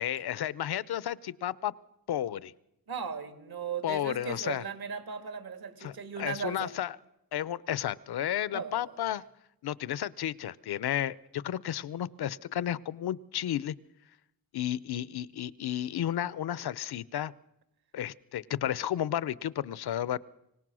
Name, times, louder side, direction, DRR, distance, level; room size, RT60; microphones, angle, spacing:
voice 1, 0.0-1.7 2.1-2.5 3.8-4.6 5.8-6.9 7.3-9.2 9.6-13.7 14.5-17.3 17.9-20.2, left 11 dB, 80° left, 20 dB, 0.7 m, -32 dB
voice 2, 2.9-6.8 8.5-9.2, right 6 dB, 70° right, 8 dB, 2.4 m, -37 dB
25.0 x 17.5 x 6.2 m, 0.84 s
wide cardioid pair, 100°, 38 cm